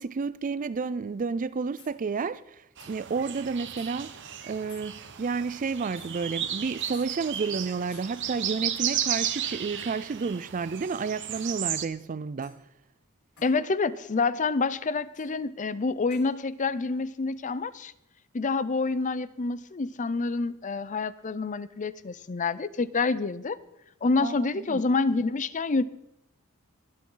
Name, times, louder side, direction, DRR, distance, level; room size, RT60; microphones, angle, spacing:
voice 1, 0.0-2.6 2.9-4.1 4.4-12.6 24.2-24.8, right 5 dB, 40° right, 0.4 m, -31 dB
sound 1, 1.8-1.9 2.8-2.9 3.8-3.9 4.7-4.9 6.0-6.1 6.9-7.1 7.9-8.1 9.8-10.0 11.3-11.5 12.4-12.6 13.4-13.6 15.1-15.3 16.1-16.3, left 5 dB, 75° left, 6.6 m, -53 dB
sound 2, 2.8-11.9, right 10 dB, 60° right, 1.0 m, -34 dB
voice 2, 13.4-17.9 18.3-23.6 24.0-25.8, left 3 dB, 35° left, 0.5 m, -27 dB
24.0 x 8.6 x 3.9 m
head